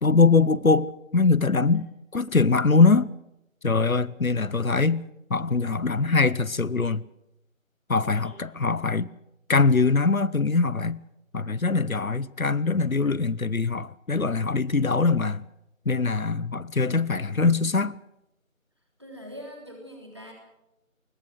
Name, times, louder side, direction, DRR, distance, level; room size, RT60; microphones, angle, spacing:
voice 1, 0.0-0.9 1.1-1.8 2.1-3.1 3.6-5.0 5.3-7.0 7.9-9.1 9.5-11.0 11.3-15.4 15.8-17.9, left 4 dB, 85° left, 1.1 m, -22 dB
voice 2, 19.0-20.3, equal, 20° right, 3.4 m, -42 dB
21.0 x 20.0 x 7.8 m
figure-of-eight pair, 180°, 40 cm